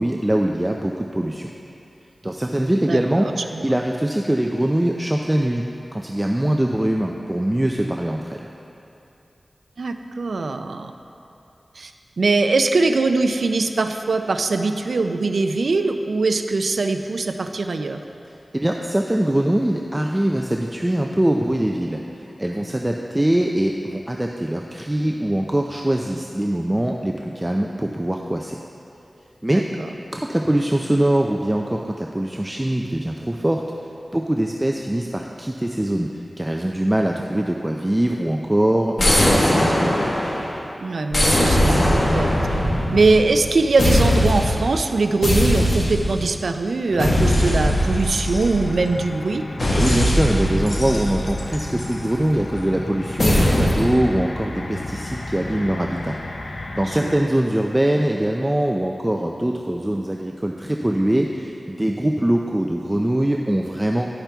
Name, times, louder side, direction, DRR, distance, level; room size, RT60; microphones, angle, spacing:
voice 1, 0.0-1.5 2.2-3.3 3.6-5.6 5.9-8.5 18.5-28.6 29.4-29.7 30.1-33.6 34.1-36.1 36.4-40.2 49.8-56.1 56.8-64.1, right 1 dB, 20° right, 1 dB, 0.4 m, -22 dB
voice 2, 2.9-3.6 9.8-10.9 11.8-11.9 12.2-18.0 29.5-29.9 40.8-42.3 42.9-49.4 56.9-57.3, right 3 dB, 85° right, 7 dB, 0.4 m, -21 dB
sound 1, 39.0-40.6 41.1-43.5 43.8-44.6 45.2-46.3 47.0-48.9 49.6-52.0 53.2-53.9, left 1 dB, 50° left, 1.3 m, -20 dB
sound 2, 46.9-57.2, left 2 dB, 75° left, 0.6 m, -33 dB
10.5 x 5.8 x 3.4 m, 2.8 s
cardioid pair, 50°, 0 cm